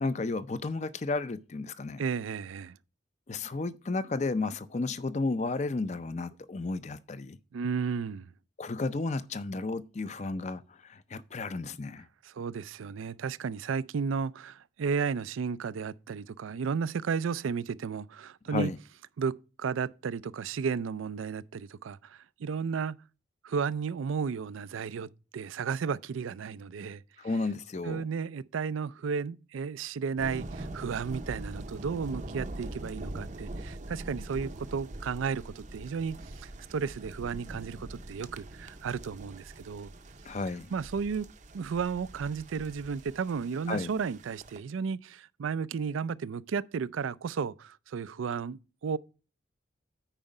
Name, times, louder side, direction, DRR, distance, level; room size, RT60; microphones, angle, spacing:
voice 1, 0.0-2.0 3.3-7.4 8.6-12.0 18.5-18.8 27.2-28.0 40.3-40.7 43.7-43.9, left 3 dB, 35° left, 0.5 m, -33 dB
voice 2, 2.0-2.8 7.5-8.3 12.2-18.7 19.2-19.3 19.6-23.0 23.4-27.0 27.8-39.9 40.7-41.3 41.5-49.0, right 6 dB, 85° right, 0.4 m, -33 dB
sound 1, 30.2-44.6, right 1 dB, 40° right, 0.6 m, -43 dB
8.9 x 4.9 x 5.3 m
head